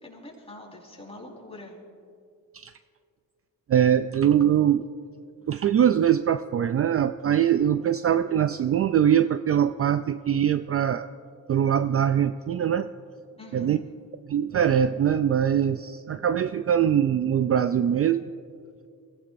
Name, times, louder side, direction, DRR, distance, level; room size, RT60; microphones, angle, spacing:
voice 1, 0.0-1.7 13.4-13.8, left 1 dB, 15° left, -2 dB, 4.5 m, -44 dB
voice 2, 3.7-4.9 5.5-11.1 11.5-12.9 13.5-13.8 14.3-18.3, right 9 dB, 40° right, 11 dB, 0.4 m, -22 dB
23.0 x 16.0 x 2.6 m, 2.3 s
cardioid pair, 80°, 35 cm